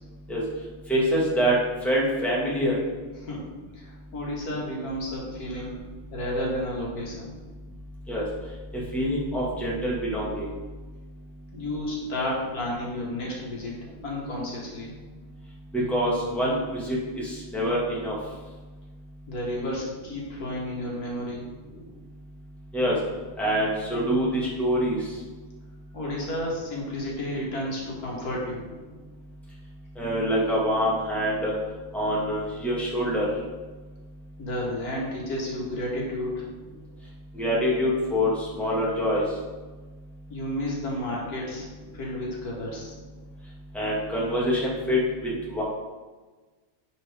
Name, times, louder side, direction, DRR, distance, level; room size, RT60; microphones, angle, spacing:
voice 1, 0.9-1.6 1.8-2.8 8.1-8.2 8.7-10.5 15.7-18.2 22.7-23.0 23.4-25.0 30.0-31.5 31.9-33.3 37.3-39.2 43.7-45.6, equal, ahead, -6 dB, 1.8 m, -25 dB
voice 2, 3.2-3.5 3.7-5.8 6.1-7.3 11.5-14.9 19.3-21.5 25.9-28.6 34.4-36.4 40.3-41.7 41.9-42.9, left 1 dB, 85° left, -3 dB, 2.1 m, -32 dB
9.7 x 4.3 x 3.6 m, 1.3 s
omnidirectional pair, 1.6 m